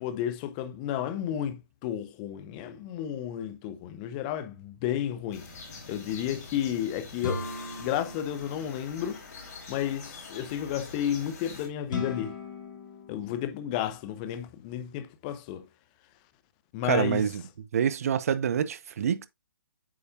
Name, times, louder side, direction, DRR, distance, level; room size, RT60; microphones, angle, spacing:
voice 1, 0.0-5.4 5.9-7.4 7.8-9.2 9.7-12.3 13.1-15.6 16.7-17.2, left 10 dB, 20° left, 0.8 m, -32 dB
sound 1, 5.3-11.7, left 3 dB, 45° left, 4.5 m, -45 dB
sound 2, 7.2-9.2 11.9-14.1, left 3 dB, 60° left, 3.2 m, -38 dB
voice 2, 16.8-17.4 17.7-19.3, right 8 dB, 40° right, 0.8 m, -26 dB
8.7 x 6.7 x 2.6 m
figure-of-eight pair, 140°, 12 cm